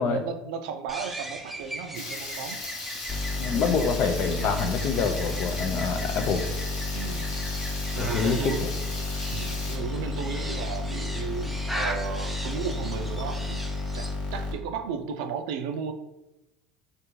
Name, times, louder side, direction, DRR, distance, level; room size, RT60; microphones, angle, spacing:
voice 1, 0.0-2.6 4.3-4.6 7.0-8.6 9.3-13.6 13.9-15.9, right 7 dB, 70° right, 6 dB, 0.4 m, -34 dB
sound 1, 0.9-14.1, right 1 dB, 5° right, 0.5 m, -39 dB
Water tap faucet / Liquid, 1.9-9.8, left 3 dB, 80° left, 0.7 m, -38 dB
sound 2, 3.1-14.5, left 3 dB, 30° left, 1.0 m, -32 dB
voice 2, 3.4-6.5 8.0-8.5, left 5 dB, 55° left, 7 dB, 0.4 m, -26 dB
3.4 x 2.5 x 3.0 m, 0.96 s
hypercardioid pair, 70°, 3 cm